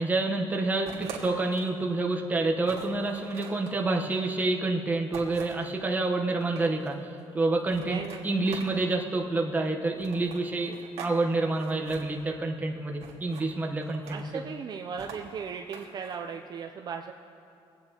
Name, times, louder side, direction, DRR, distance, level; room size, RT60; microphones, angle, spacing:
voice 1, 0.0-7.0 7.3-10.7 11.0-14.4, right 2 dB, 15° right, 1 dB, 1.0 m, -28 dB
sound 1, 0.8-1.8 2.2-2.3 2.6-3.8 5.1-5.7 6.3-6.9 7.7-9.0 10.0-11.2 11.4-12.0 13.0-13.5 13.8-14.3 15.0-16.2, right 6 dB, 90° right, 1.6 m, -44 dB
voice 2, 7.8-8.3 14.0-17.1, right 6 dB, 40° right, 3 dB, 0.5 m, -37 dB
21.5 x 8.7 x 2.9 m, 2.6 s
cardioid pair, 135°, 10 cm